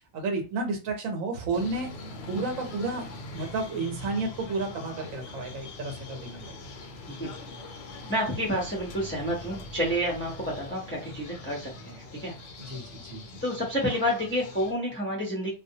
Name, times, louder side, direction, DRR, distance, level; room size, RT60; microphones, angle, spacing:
voice 1, 0.1-1.9 2.3-3.1 3.3-6.5 12.6-13.4, right 3 dB, 75° right, 4 dB, 1.1 m, -31 dB
sound 1, 1.5-14.7, left 2 dB, 65° left, 0.7 m, -43 dB
voice 2, 8.1-12.3 13.4-15.5, equal, 15° left, -3 dB, 0.5 m, -29 dB
2.5 x 2.1 x 2.7 m, 0.34 s
omnidirectional pair, 1.4 m